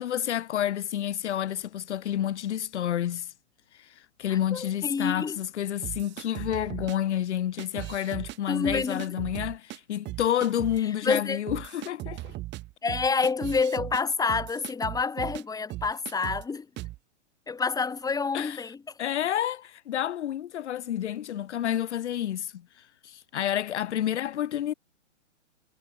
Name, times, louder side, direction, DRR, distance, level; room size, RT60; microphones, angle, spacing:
voice 1, 0.0-3.3 3.7-12.3 18.3-18.6 19.0-24.7, left 11 dB, 65° left, 1.4 m, -29 dB
voice 2, 4.3-5.4 8.5-9.1 11.0-11.4 12.8-16.7 17.5-19.0, left 4 dB, 10° left, 3.5 m, -28 dB
sound 1, 5.8-7.0 7.6-8.4 8.6-9.8 10.1-10.8 11.1-11.2 11.5-15.4 15.7-16.5 16.8-17.0, right 17 dB, 30° right, 3.7 m, -38 dB
hypercardioid pair, 125°, 37 cm